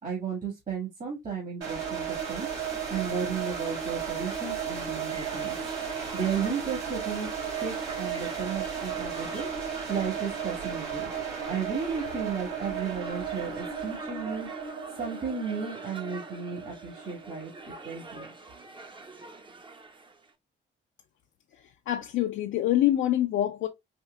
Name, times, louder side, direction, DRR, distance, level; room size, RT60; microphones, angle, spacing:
voice 1, 0.0-5.6 6.1-7.3 7.6-11.1 11.5-18.3, right 6 dB, 45° right, 1.6 m, -34 dB
sound 1, 1.6-18.4, right 7 dB, 80° right, 2.6 m, -35 dB
sound 2, 5.1-20.3, right 3 dB, 25° right, 0.7 m, -46 dB
voice 2, 21.9-23.7, left 13 dB, 75° left, 0.5 m, -25 dB
4.4 x 2.7 x 2.2 m
cardioid pair, 90°, 20 cm